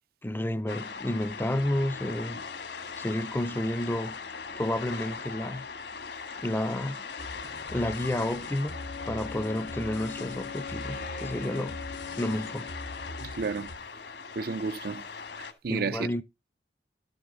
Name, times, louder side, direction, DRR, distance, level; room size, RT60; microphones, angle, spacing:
voice 1, 0.2-2.4 3.0-4.2 4.6-5.7 6.4-7.0 7.7-8.8 9.1-11.8 12.2-12.7 15.7-16.2, left 1 dB, 10° left, 0.5 m, -30 dB
sound 1, 0.7-15.5, left 5 dB, 70° left, 1.6 m, -40 dB
sound 2, 7.2-13.8, left 1 dB, 90° left, 1.2 m, -44 dB
Wind instrument woodwind instrument, 8.7-13.5, left 5 dB, 50° left, 0.8 m, -43 dB
voice 2, 13.2-13.7 14.4-15.0 15.4-16.2, right 4 dB, 60° right, 0.5 m, -32 dB
12.5 x 7.9 x 3.9 m
head